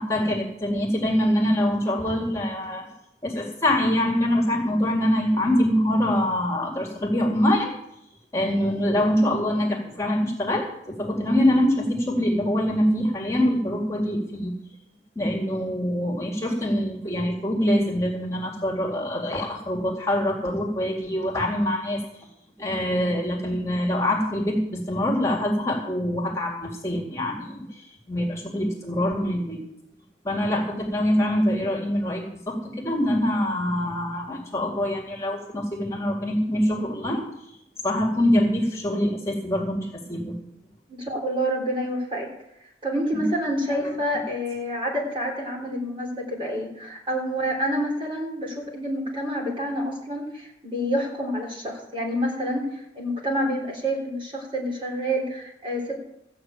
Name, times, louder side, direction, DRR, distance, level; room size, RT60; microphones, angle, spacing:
voice 1, 0.0-2.9 3.2-7.7 8.3-14.5 15.2-22.0 22.6-29.6 30.2-37.2 37.8-40.3 43.1-43.3 43.7-43.9, left 1 dB, 15° left, -1 dB, 2.1 m, -24 dB
voice 2, 40.9-42.3 42.8-56.0, equal, 30° right, -1 dB, 3.6 m, -28 dB
14.5 x 6.4 x 8.9 m, 0.79 s
head